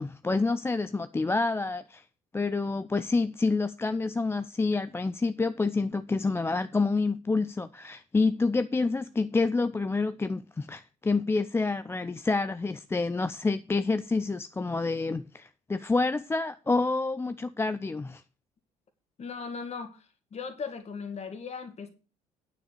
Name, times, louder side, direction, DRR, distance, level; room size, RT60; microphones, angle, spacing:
voice 1, 0.0-2.0 2.3-18.2, left 3 dB, 15° left, 0.5 m, -28 dB
voice 2, 19.2-20.1 20.3-21.9, left 5 dB, 35° left, 2.1 m, -37 dB
9.5 x 6.2 x 6.7 m
figure-of-eight pair, 50°, 18 cm